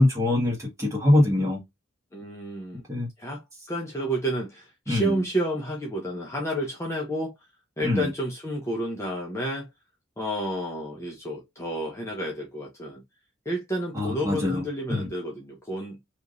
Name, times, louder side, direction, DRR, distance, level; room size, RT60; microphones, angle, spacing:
voice 1, 0.0-1.6 2.9-3.1 4.9-5.1 7.8-8.1 13.9-14.6 14.9-15.1, left 1 dB, 15° right, 1.5 m, -23 dB
voice 2, 2.1-2.8 3.2-7.3 7.8-9.7 10.2-13.0 13.5-16.0, right 1 dB, 15° left, 0.7 m, -30 dB
3.4 x 2.8 x 2.5 m
head